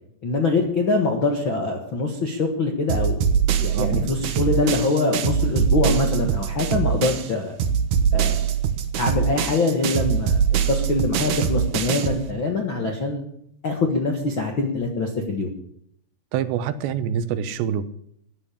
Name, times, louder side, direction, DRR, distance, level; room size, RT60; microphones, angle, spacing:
voice 1, 0.2-3.2 3.6-7.5 8.1-8.5 8.9-10.4 10.7-13.2 13.6-15.5, left 3 dB, 60° left, 3 dB, 1.3 m, -24 dB
sound 1, 2.9-7.3 7.6-12.2, right 7 dB, 65° right, 2.2 m, -23 dB
voice 2, 16.3-17.9, right 8 dB, 85° right, 13 dB, 3.1 m, -26 dB
14.5 x 9.6 x 8.6 m, 0.71 s
omnidirectional pair, 4.9 m